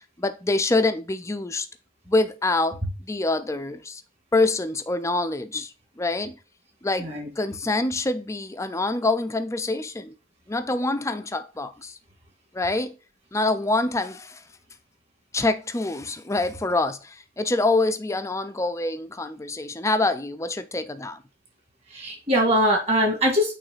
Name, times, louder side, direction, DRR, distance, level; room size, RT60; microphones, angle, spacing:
voice 1, 0.2-1.7 2.1-4.0 4.3-6.4 6.8-7.1 7.4-10.1 10.5-12.0 12.5-13.0 13.3-14.4 15.3-21.2, left 2 dB, 15° left, 0.4 m, -25 dB
voice 2, 21.9-23.5, equal, 30° right, 2.1 m, -22 dB
8.6 x 3.2 x 4.0 m
head